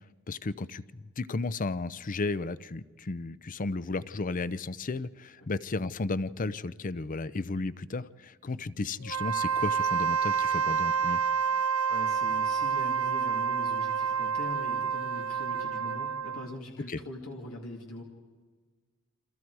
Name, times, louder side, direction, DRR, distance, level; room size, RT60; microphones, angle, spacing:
voice 1, 0.3-11.2 16.9-17.0, left 3 dB, 40° left, 16 dB, 0.6 m, -34 dB
Wind instrument woodwind instrument, 9.0-16.5, right 6 dB, 65° right, 0.7 m, -28 dB
voice 2, 11.9-18.0, left 1 dB, 85° left, 0 dB, 2.4 m, -42 dB
28.5 x 26.5 x 4.7 m, 1.5 s
head